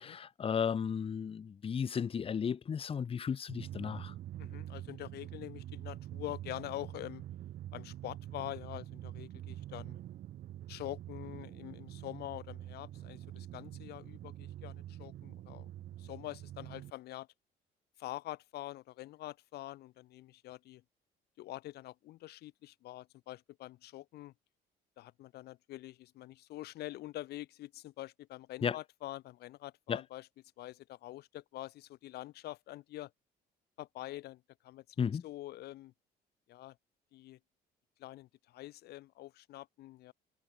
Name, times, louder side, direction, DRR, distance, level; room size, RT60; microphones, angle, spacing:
voice 1, 0.0-4.1 28.6-28.8 29.9-30.0 35.0-35.2, left 7 dB, 35° left, 1.1 m, -34 dB
Drum, 3.5-16.9, right 13 dB, 55° right, 0.7 m, -46 dB
voice 2, 4.4-7.2 7.7-10.0 10.7-15.7 16.0-17.3 18.0-20.8 21.4-24.3 25.0-30.3 30.6-33.1 33.8-35.9 36.5-36.8 37.1-37.4 38.0-40.1, left 16 dB, 75° left, 1.2 m, -45 dB
cardioid pair, 110°, 17 cm